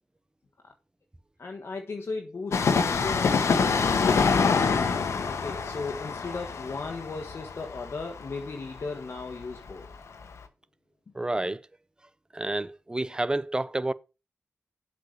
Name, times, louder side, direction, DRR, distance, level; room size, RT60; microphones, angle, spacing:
voice 1, 1.4-4.7 5.3-9.9, left 3 dB, 60° left, 1.4 m, -36 dB
Train, 2.5-10.0 10.2-10.3, left 5 dB, 85° left, 1.2 m, -26 dB
voice 2, 11.1-11.6 12.3-13.9, right 2 dB, 15° right, 0.6 m, -29 dB
7.8 x 5.0 x 6.6 m
cardioid pair, 70°, 5 cm